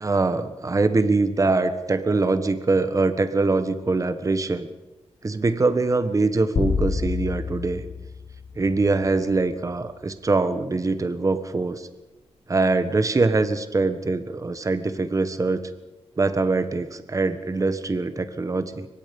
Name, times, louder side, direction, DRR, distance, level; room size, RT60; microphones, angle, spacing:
voice 1, 0.0-4.7 5.2-7.8 8.6-11.9 12.5-15.6 16.2-18.9, right 3 dB, 30° right, 10 dB, 1.4 m, -23 dB
sound 1, 6.6-9.1, left 4 dB, 75° left, 3.0 m, -28 dB
23.5 x 21.5 x 5.4 m, 1.1 s
wide cardioid pair, 95°, 11 cm